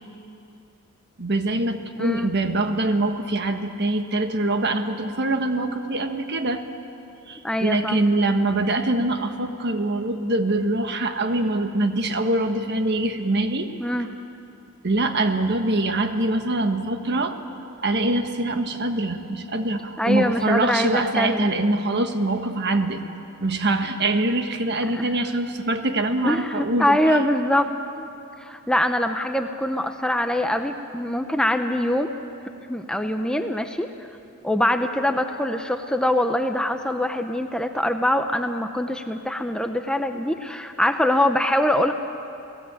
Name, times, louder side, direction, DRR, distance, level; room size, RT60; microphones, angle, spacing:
voice 1, 1.2-6.6 7.3-13.7 14.8-17.4 17.8-23.0 23.4-27.2, right 2 dB, 50° right, 6 dB, 1.5 m, -24 dB
voice 2, 2.0-2.3 7.4-8.0 13.8-14.1 20.0-21.5 24.9-25.1 26.2-27.7 28.0-28.1 28.4-32.1 32.7-33.9 34.4-41.9, left 1 dB, 5° left, 6 dB, 0.7 m, -23 dB
28.0 x 17.5 x 8.9 m, 2.8 s
head